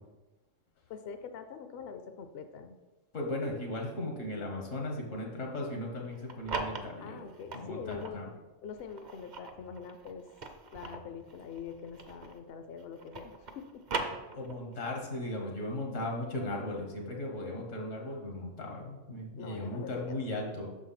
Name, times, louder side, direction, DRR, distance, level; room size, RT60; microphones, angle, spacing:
voice 1, 0.9-2.8 7.0-8.2 8.6-10.3 10.7-13.8 19.4-20.2, left 6 dB, 60° left, 8 dB, 0.7 m, -44 dB
voice 2, 3.1-7.2 7.5-8.3 14.3-20.7, left 1 dB, 90° left, 0 dB, 1.9 m, -37 dB
sound 1, 6.1-8.2 8.8-12.5 12.8-14.8, right 3 dB, 45° right, 0.7 m, -40 dB
6.4 x 4.7 x 5.8 m, 1.1 s
omnidirectional pair, 1.3 m